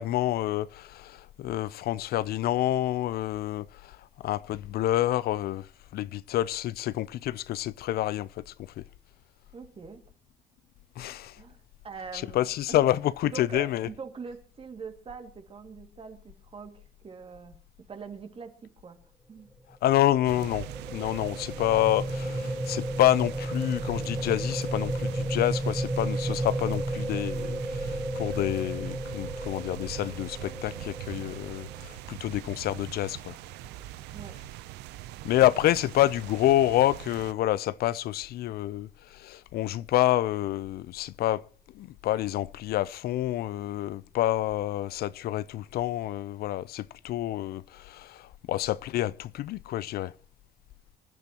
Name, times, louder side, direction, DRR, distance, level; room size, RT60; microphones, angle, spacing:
voice 1, 0.0-4.0 4.2-8.8 11.0-11.4 12.1-13.9 19.8-33.4 35.2-41.4 41.7-50.1, left 14 dB, 65° left, 0.5 m, -28 dB
voice 2, 9.5-10.0 11.4-12.9 13.2-17.6 17.9-19.0 19.3-19.5 34.1-34.4, right 5 dB, 35° right, 2.2 m, -43 dB
sound 1, 20.0-32.0, right 1 dB, 5° right, 1.0 m, -33 dB
sound 2, 20.2-37.3, right 15 dB, 90° right, 0.6 m, -43 dB
26.0 x 12.0 x 2.9 m
cardioid pair, 110°, 17 cm